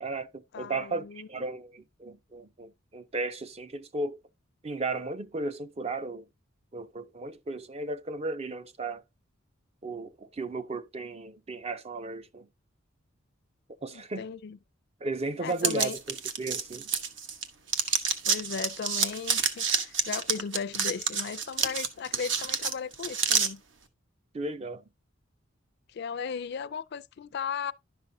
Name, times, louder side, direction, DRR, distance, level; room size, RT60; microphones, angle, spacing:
voice 1, 0.0-4.2 4.6-6.3 6.7-9.0 9.8-12.5 13.8-14.3 15.0-16.9 24.3-24.8, right 3 dB, 30° right, 0.5 m, -35 dB
voice 2, 0.5-1.3 13.9-14.6 15.4-16.0 18.2-23.6 25.9-27.7, left 6 dB, 55° left, 0.4 m, -36 dB
sound 1, 15.6-17.4 17.7-23.5, right 6 dB, 65° right, 1.0 m, -28 dB
11.0 x 6.0 x 2.7 m
head